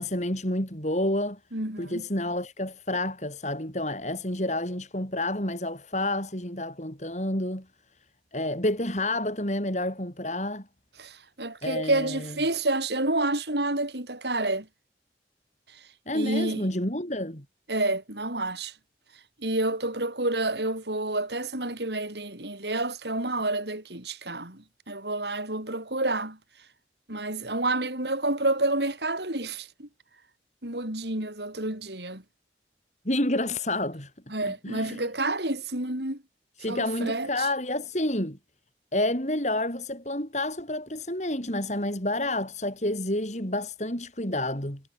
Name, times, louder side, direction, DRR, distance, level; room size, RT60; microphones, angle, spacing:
voice 1, 0.0-1.4 1.8-7.7 8.3-10.7 11.6-12.3 16.1-17.4 33.0-34.1 34.6-35.0 36.6-38.4 38.9-44.8, left 1 dB, 40° left, 7.8 m, -29 dB
voice 2, 1.5-2.0 11.0-14.7 15.7-15.8 16.1-16.6 17.7-18.7 19.4-26.4 27.1-29.9 30.6-32.2 34.3-36.2 36.7-37.5, right 2 dB, 75° right, 6.9 m, -29 dB
head